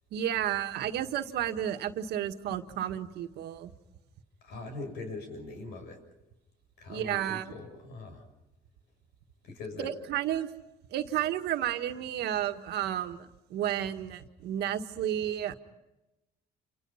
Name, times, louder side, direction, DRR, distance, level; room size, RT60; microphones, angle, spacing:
voice 1, 0.1-3.7 6.9-7.5 9.8-10.5 10.9-15.5, right 11 dB, 75° right, 7 dB, 1.7 m, -32 dB
voice 2, 4.4-6.0 6.8-8.2 9.4-9.9, left 3 dB, 80° left, 6 dB, 7.0 m, -41 dB
28.5 x 27.5 x 5.7 m, 0.96 s
cardioid pair, 110°, 17 cm